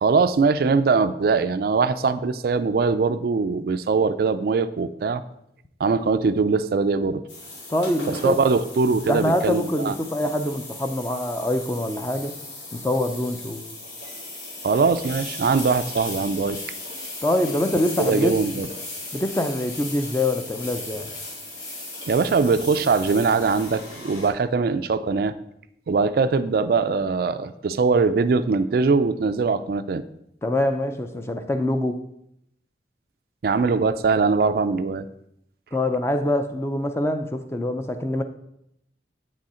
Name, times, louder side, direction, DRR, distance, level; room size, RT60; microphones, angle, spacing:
voice 1, 0.0-5.2 5.8-7.2 8.1-9.9 14.6-16.6 17.7-18.7 22.1-25.3 25.9-30.0 33.4-35.1, right 4 dB, 55° right, 12 dB, 0.3 m, -21 dB
sound 1, 7.3-24.3, left 2 dB, 85° left, 2.5 m, -37 dB
voice 2, 7.7-8.4 9.1-12.4 12.7-13.6 17.2-18.3 19.1-21.1 30.4-32.0 35.7-38.2, left 1 dB, 15° left, 8 dB, 0.4 m, -24 dB
8.1 x 6.2 x 4.3 m, 0.77 s
head